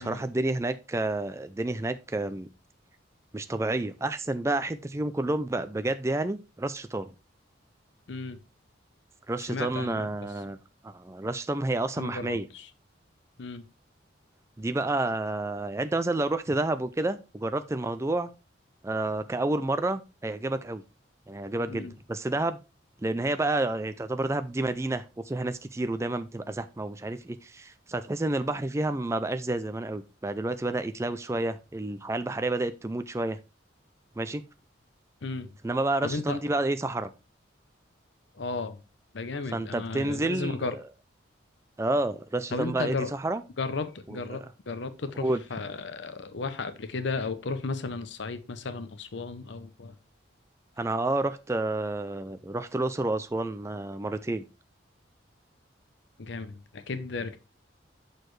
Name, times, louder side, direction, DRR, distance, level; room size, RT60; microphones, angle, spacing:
voice 1, 0.0-2.5 3.3-7.1 9.3-10.6 10.8-12.5 14.6-18.3 18.8-20.8 21.3-22.6 23.0-33.4 34.2-34.4 35.6-37.1 39.5-40.6 41.8-43.0 43.2-43.4 45.2-45.4 50.8-54.4, right 2 dB, 15° right, 0.3 m, -29 dB
voice 2, 8.1-8.4 9.4-10.1 12.0-12.7 13.4-13.6 21.7-22.0 35.2-35.5 36.0-36.4 38.3-38.8 39.1-40.8 42.5-43.1 43.6-49.9 56.2-57.4, left 3 dB, 65° left, 0.7 m, -34 dB
6.5 x 6.4 x 3.1 m
head